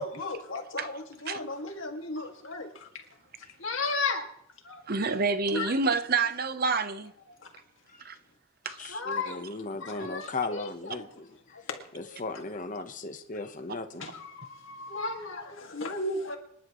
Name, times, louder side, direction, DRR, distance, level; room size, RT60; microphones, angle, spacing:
voice 1, 0.0-2.9 3.6-4.3 4.6-4.8 5.5-5.7 7.4-7.5 8.9-9.4 9.8-11.1 11.5-11.8 12.1-12.2 14.0-16.4, left 3 dB, 70° left, 2.2 m, -34 dB
voice 2, 4.9-7.1 8.0-8.2 8.6-8.9, right 4 dB, 45° right, 0.8 m, -28 dB
voice 3, 8.8-11.6 11.9-14.0, left 3 dB, 40° left, 1.1 m, -37 dB
26.0 x 10.5 x 3.1 m
head